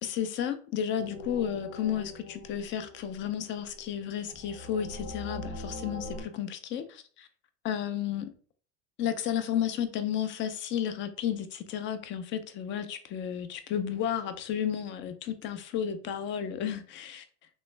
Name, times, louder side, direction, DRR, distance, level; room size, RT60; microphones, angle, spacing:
voice 1, 0.0-7.3 7.6-8.3 9.0-17.2, left 9 dB, 35° left, 0.5 m, -32 dB
sound 1, 1.0-6.2, left 1 dB, 75° left, 1.0 m, -42 dB
3.1 x 3.1 x 3.2 m
supercardioid pair, 125°, 35 cm